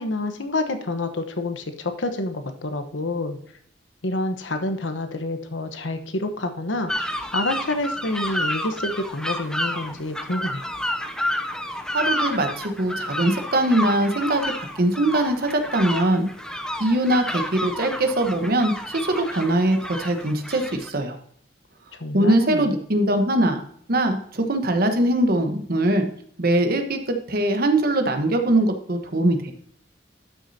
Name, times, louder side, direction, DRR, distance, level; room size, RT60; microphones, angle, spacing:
voice 1, 0.0-3.4 4.0-6.9 7.3-10.6 21.9-22.7, left 2 dB, 75° left, 8 dB, 1.1 m, -28 dB
sound 1, 6.9-20.9, left 1 dB, 5° left, 0.6 m, -30 dB
voice 2, 11.9-16.3 16.8-21.1 22.1-23.6 23.9-26.1 26.4-29.5, right 1 dB, 55° right, 6 dB, 1.2 m, -22 dB
12.5 x 6.3 x 2.8 m, 0.63 s
head